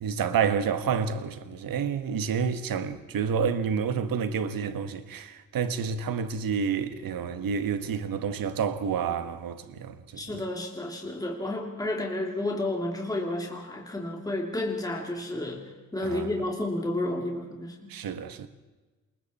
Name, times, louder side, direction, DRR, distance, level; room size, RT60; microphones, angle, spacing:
voice 1, 0.0-10.0 16.0-16.3 17.9-18.5, right 6 dB, 80° right, 1.6 m, -29 dB
voice 2, 10.2-15.6 15.9-17.9, left 1 dB, 10° left, 2.7 m, -31 dB
27.5 x 22.0 x 4.3 m
wide cardioid pair, 150°, 34 cm